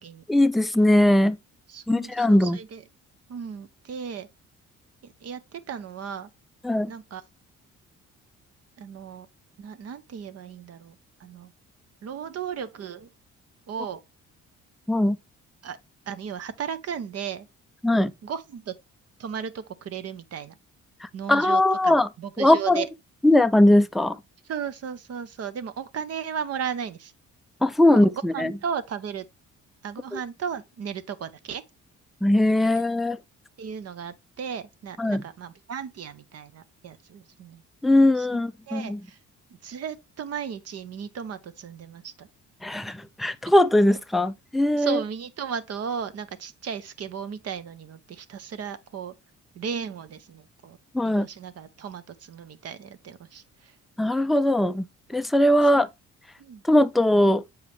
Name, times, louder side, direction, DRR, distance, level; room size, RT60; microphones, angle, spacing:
voice 1, 0.3-1.4 1.9-2.6 6.6-6.9 14.9-15.2 17.8-18.1 21.0-22.1 22.4-22.8 23.2-24.2 27.6-28.5 30.1-30.2 32.2-33.2 35.0-35.2 37.8-39.0 42.6-45.0 50.9-51.3 54.0-54.8 55.1-55.9 56.6-57.4, left 1 dB, ahead, 0.3 m, -20 dB
voice 2, 1.7-2.8 3.3-4.3 5.0-6.3 6.9-7.2 8.8-9.3 9.6-11.5 12.0-13.1 13.7-14.0 15.6-15.8 16.1-17.5 18.2-18.8 19.2-20.6 21.1-22.9 24.5-27.1 28.1-29.2 29.8-31.6 32.6-32.7 33.6-37.6 38.2-38.3 38.7-39.2 39.5-42.3 44.8-49.1 49.5-50.8 51.0-53.8 55.6-55.9 56.4-56.6, right 7 dB, 55° right, 0.8 m, -35 dB
7.2 x 4.8 x 3.1 m
cardioid pair, 90°, 30 cm